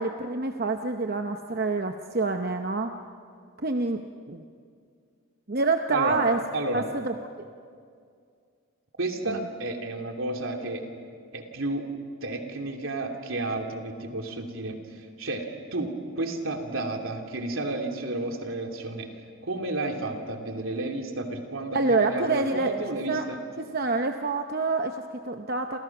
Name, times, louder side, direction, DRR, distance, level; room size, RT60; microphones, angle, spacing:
voice 1, 0.0-3.0 3.6-4.0 4.3-4.4 5.5-6.4 6.7-7.5 9.3-9.5 21.7-22.7 23.1-23.2 23.7-25.8, right 3 dB, 45° right, 5 dB, 0.8 m, -27 dB
voice 2, 6.5-6.8 9.0-10.8 11.3-11.8 12.2-19.1 19.4-23.4, right 2 dB, 80° right, 2 dB, 3.0 m, -31 dB
29.0 x 27.5 x 6.1 m, 2.2 s
head